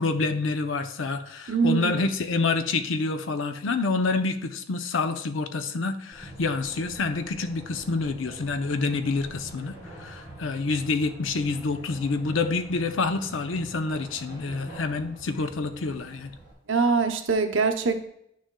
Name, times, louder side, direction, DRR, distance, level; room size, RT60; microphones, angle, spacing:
voice 1, 0.0-9.7 10.0-16.3, left 3 dB, 85° left, 8 dB, 0.6 m, -27 dB
voice 2, 1.5-2.1 16.7-18.1, right 5 dB, 80° right, 5 dB, 0.8 m, -23 dB
sound 1, 6.1-16.5, right 1 dB, 30° left, 3.1 m, -44 dB
11.0 x 6.3 x 2.2 m, 0.74 s
head